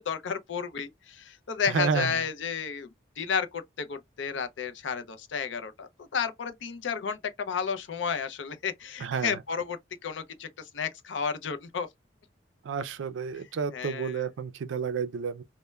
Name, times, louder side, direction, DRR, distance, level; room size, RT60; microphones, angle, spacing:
voice 1, 0.0-2.9 3.2-11.9 13.7-14.3, left 6 dB, 75° left, 0.4 m, -32 dB
voice 2, 1.7-2.2 9.0-9.3 12.6-15.4, right 6 dB, 80° right, 0.4 m, -30 dB
2.2 x 2.1 x 3.1 m
head